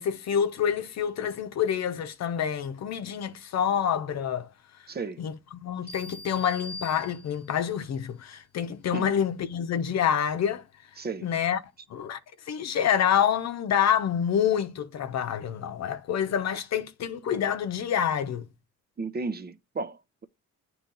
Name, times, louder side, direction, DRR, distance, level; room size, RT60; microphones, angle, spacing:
voice 1, 0.0-4.5 5.2-10.6 11.2-11.6 11.9-12.2 12.5-18.5, left 8 dB, 60° left, 0.8 m, -27 dB
voice 2, 4.9-5.2 5.8-5.9 8.9-9.1 11.0-11.3 19.0-20.2, right 4 dB, 30° right, 0.7 m, -34 dB
sound 1, 5.9-7.7, left 1 dB, 20° left, 1.4 m, -43 dB
9.0 x 3.2 x 3.8 m
cardioid pair, 90°, 30 cm